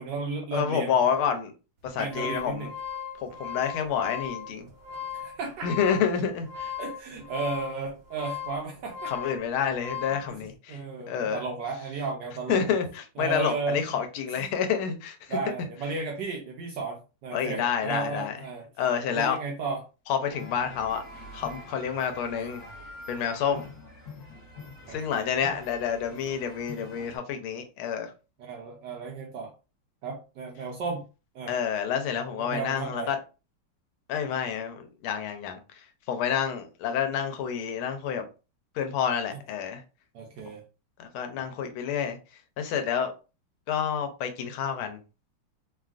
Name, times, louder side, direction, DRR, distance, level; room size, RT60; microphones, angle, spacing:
voice 1, 0.0-0.9 2.0-2.7 5.1-5.7 6.8-9.1 10.3-10.4 10.7-12.7 13.2-14.0 14.4-14.5 15.3-18.7 19.1-19.8 22.4-22.5 24.9-25.6 28.4-29.5 30.0-31.0 31.3-31.5 32.3-33.1 40.1-40.6, right 4 dB, 70° right, 1.0 m, -34 dB
voice 2, 0.5-1.5 1.8-2.7 3.2-4.7 5.6-6.7 9.1-11.4 12.5-15.4 17.3-18.4 18.8-19.4 20.1-21.0 21.3-22.6 23.1-23.7 24.9-28.1 31.5-33.2 34.1-38.3 38.7-39.8 41.0-42.2 42.6-43.1 43.7-45.0, left 7 dB, 80° left, 1.4 m, -29 dB
sound 1, 1.8-10.3, left 8 dB, 50° right, 0.7 m, -38 dB
sound 2, 20.3-27.2, left 2 dB, 40° left, 0.9 m, -45 dB
3.4 x 2.3 x 2.4 m
omnidirectional pair, 2.3 m